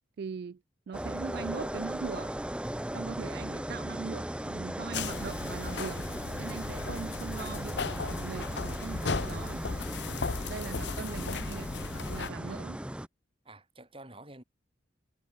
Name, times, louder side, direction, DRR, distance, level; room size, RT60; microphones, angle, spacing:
voice 1, 0.2-0.6 0.9-2.4 2.9-6.0 6.3-9.6 10.5-11.7 12.1-12.8, right 6 dB, 55° right, 0.3 m, -40 dB
sound 1, 0.9-13.1, right 1 dB, 5° right, 0.6 m, -37 dB
sound 2, 4.9-12.3, left 4 dB, 65° left, 0.8 m, -36 dB
voice 2, 12.2-12.6 13.4-14.4, right 2 dB, 30° right, 7.9 m, -53 dB
head